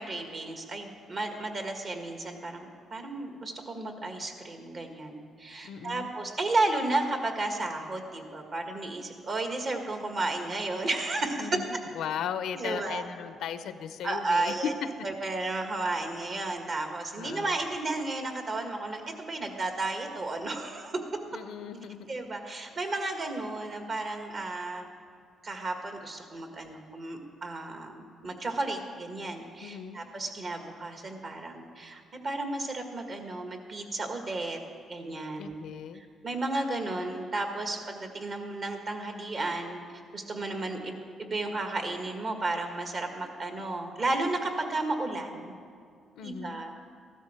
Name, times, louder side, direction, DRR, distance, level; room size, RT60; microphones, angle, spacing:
voice 1, 0.0-11.5 12.6-13.0 14.0-14.7 15.0-21.0 22.1-24.9 25.4-34.6 34.9-39.8 40.1-45.5 46.2-46.8, right 2 dB, 45° right, 4 dB, 1.8 m, -33 dB
voice 2, 5.6-6.1 11.4-14.7 17.2-17.6 21.3-22.2 29.6-30.0 35.4-36.0 46.2-46.6, left 8 dB, 80° left, 12 dB, 0.6 m, -37 dB
15.0 x 12.5 x 4.4 m, 2.2 s
cardioid pair, 90°, 0 cm